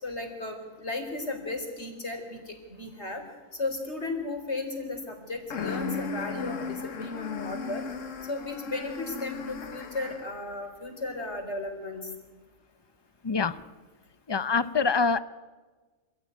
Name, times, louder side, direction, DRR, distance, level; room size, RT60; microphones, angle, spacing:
voice 1, 0.0-3.2 3.5-7.8 8.3-12.1, left 2 dB, 55° left, 4 dB, 4.5 m, -35 dB
sound 1, 5.5-10.4, left 5 dB, 70° left, 1.7 m, -36 dB
voice 2, 13.2-13.6 14.3-15.2, left 5 dB, 25° left, 15 dB, 0.6 m, -25 dB
27.0 x 16.0 x 9.5 m, 1.3 s
omnidirectional pair, 1.4 m